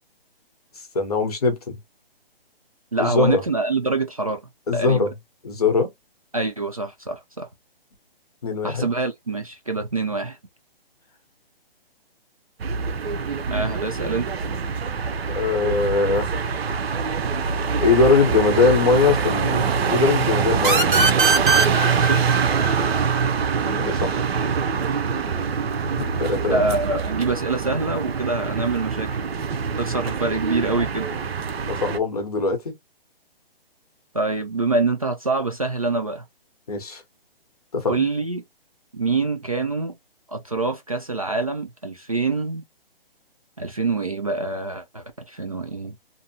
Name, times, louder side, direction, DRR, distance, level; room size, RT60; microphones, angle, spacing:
voice 1, 0.9-1.8 3.0-3.4 4.7-5.1 5.4-5.9 8.4-8.9 15.3-16.3 17.8-21.0 23.7-24.1 25.9-26.6 31.7-32.8 36.7-37.0 37.7-38.0, left 4 dB, 40° left, 0.9 m, -21 dB
voice 2, 2.9-4.4 4.7-5.1 6.3-7.5 8.6-10.4 13.5-14.3 22.0-22.4 26.5-29.3 29.8-31.1 34.1-36.2 37.9-38.4 38.9-39.9 40.3-42.6 43.6-45.9, right 3 dB, 40° right, 0.4 m, -25 dB
sound 1, 12.6-32.0, right 6 dB, 85° right, 0.6 m, -24 dB
sound 2, 20.6-24.0, right 4 dB, 60° right, 1.1 m, -21 dB
2.6 x 2.0 x 2.7 m
hypercardioid pair, 180°, 30 cm